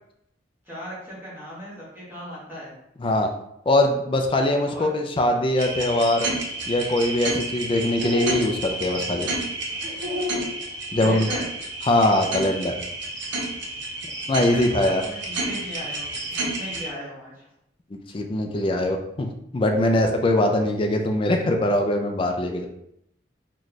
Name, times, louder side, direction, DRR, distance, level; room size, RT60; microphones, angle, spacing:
voice 1, 0.7-2.7 4.6-4.8 11.0-11.4 14.4-17.5, equal, 10° right, -8 dB, 1.3 m, -37 dB
voice 2, 3.0-3.3 3.7-6.3 6.7-9.3 10.9-11.3 11.8-12.7 14.3-15.0 17.9-22.7, left 1 dB, 30° left, 4 dB, 0.4 m, -22 dB
sound 1, 5.6-16.9, right 1 dB, 70° right, 0.7 m, -30 dB
3.1 x 2.3 x 4.0 m, 0.78 s
head